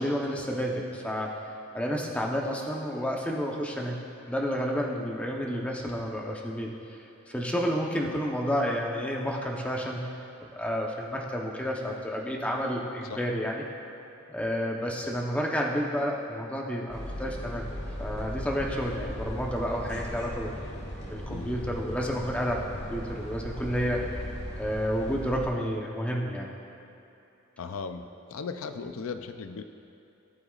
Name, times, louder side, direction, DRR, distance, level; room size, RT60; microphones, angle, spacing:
voice 1, 0.0-1.3 1.7-4.0 4.3-7.0 7.3-10.1 10.5-13.6 14.3-17.7 18.0-20.5 21.0-24.2 24.6-26.5, equal, 5° left, -1 dB, 0.9 m, -30 dB
sound 1, 16.9-25.5, equal, 55° left, 1.8 m, -38 dB
voice 2, 21.3-21.6 27.6-29.6, left 5 dB, 80° left, 8 dB, 0.5 m, -37 dB
17.5 x 7.9 x 2.4 m, 2.8 s
head